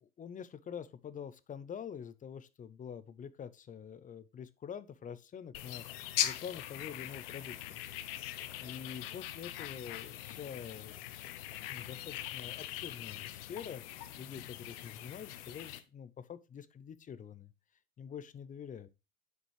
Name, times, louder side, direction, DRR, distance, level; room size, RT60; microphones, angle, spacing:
voice 1, 0.0-7.8 8.6-11.0 11.7-13.8 14.2-17.5 18.0-18.9, left 8 dB, 25° left, 0.6 m, -46 dB
sound 1, 5.5-15.8, left 13 dB, 70° left, 0.9 m, -41 dB
8.1 x 5.0 x 3.3 m
hypercardioid pair, 85°, 30 cm